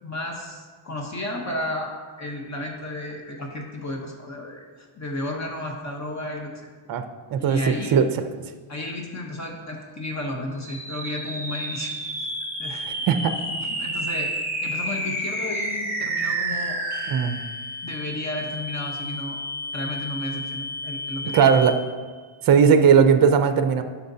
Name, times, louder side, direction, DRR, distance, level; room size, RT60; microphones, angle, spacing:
voice 1, 0.0-6.7 7.4-8.0 8.7-11.9 12.6-14.3 14.6-16.8 17.8-19.4 19.7-21.6, left 1 dB, 35° left, 1 dB, 0.9 m, -33 dB
voice 2, 7.3-8.1 13.1-13.3 17.1-17.4 21.3-21.8 22.4-23.8, right 7 dB, 45° right, 9 dB, 0.5 m, -17 dB
sound 1, 10.5-22.1, right 1 dB, 5° right, 2.2 m, -31 dB
11.5 x 5.8 x 2.7 m, 1.5 s
wide cardioid pair, 155°, 48 cm